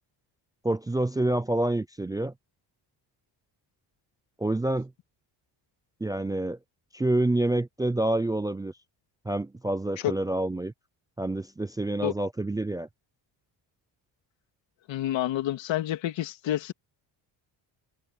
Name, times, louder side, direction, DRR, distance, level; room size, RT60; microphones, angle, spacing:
voice 1, 0.6-2.3 4.4-4.9 6.0-6.6 6.9-8.7 9.3-10.7 11.2-12.9, right 1 dB, 10° right, 0.3 m, -27 dB
voice 2, 14.9-16.7, left 13 dB, 90° left, 2.6 m, -28 dB
cardioid pair, 175°, 44 cm